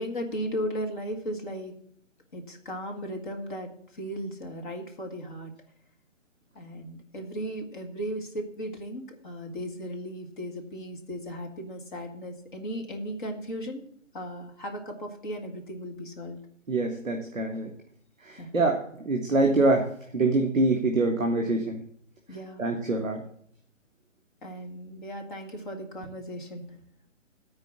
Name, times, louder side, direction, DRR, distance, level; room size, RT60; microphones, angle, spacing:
voice 1, 0.0-1.7 2.3-3.7 4.0-5.5 6.6-13.8 14.1-16.4 18.4-18.5 22.3-22.6 24.4-26.6, equal, 40° left, 3 dB, 2.0 m, -36 dB
voice 2, 16.7-17.7 18.2-21.8 22.6-23.2, right 2 dB, 5° right, -12 dB, 0.5 m, -25 dB
13.5 x 4.5 x 7.2 m, 0.65 s
figure-of-eight pair, 150°, 38 cm